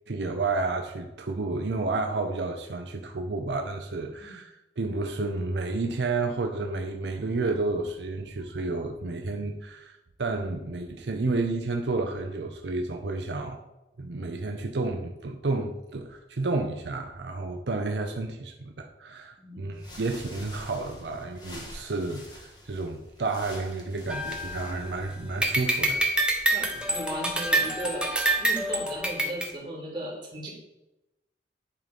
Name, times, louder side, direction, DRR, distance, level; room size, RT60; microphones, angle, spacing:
voice 1, 0.1-9.9 10.2-13.6 14.0-26.0, right 3 dB, 75° right, 4 dB, 0.7 m, -31 dB
voice 2, 19.4-19.7 26.5-28.1 28.4-30.5, right 1 dB, 25° right, -5 dB, 2.7 m, -36 dB
sound 1, 19.7-25.4, left 1 dB, 25° left, 1.5 m, -47 dB
sound 2, 24.1-25.0 25.4-29.5, right 1 dB, 5° right, 0.8 m, -27 dB
10.0 x 3.9 x 5.2 m, 0.97 s
head